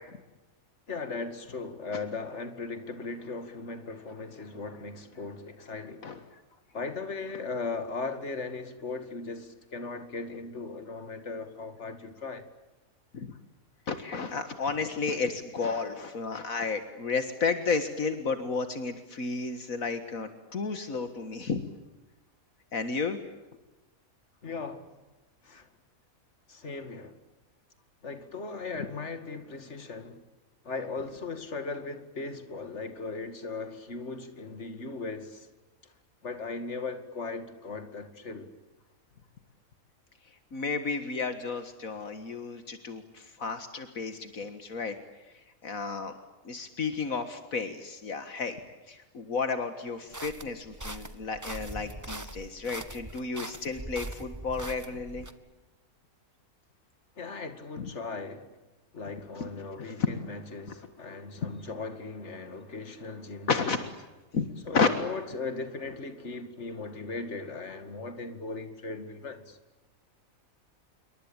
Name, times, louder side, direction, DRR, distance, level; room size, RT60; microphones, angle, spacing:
voice 1, 0.9-6.1 6.7-12.5 24.4-24.9 25.4-25.7 26.5-27.1 28.0-30.2 30.6-35.5 35.8-35.9 36.2-38.5 57.2-58.5 58.9-63.7 64.7-69.6, left 4 dB, 55° left, 2.6 m, -38 dB
voice 2, 13.9-21.6 22.7-23.2 40.5-44.9 45.6-46.1 46.5-48.6 48.9-55.3 57.8-57.9 59.4-59.5 59.8-60.1 63.5-63.8 64.3-64.5 64.7-64.9, left 4 dB, 75° left, 2.1 m, -32 dB
sound 1, 50.1-55.3, right 2 dB, 15° right, 1.2 m, -41 dB
28.0 x 23.5 x 8.9 m
omnidirectional pair, 1.5 m